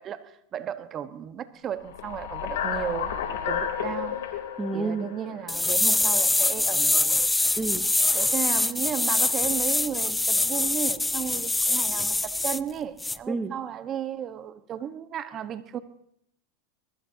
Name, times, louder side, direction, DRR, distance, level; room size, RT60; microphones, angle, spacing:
voice 1, 0.0-3.1 3.4-4.2 4.7-7.2 8.1-15.8, right 9 dB, 35° right, 1.3 m, -34 dB
sound 1, 1.8-6.1, left 8 dB, 85° left, 3.4 m, -32 dB
voice 2, 4.6-5.1 7.6-8.2 13.3-13.5, right 3 dB, 15° right, 1.1 m, -30 dB
sound 2, 5.5-12.6 13.0-13.2, left 2 dB, 10° left, 0.5 m, -24 dB
22.0 x 21.0 x 2.9 m
supercardioid pair, 120°, 0 cm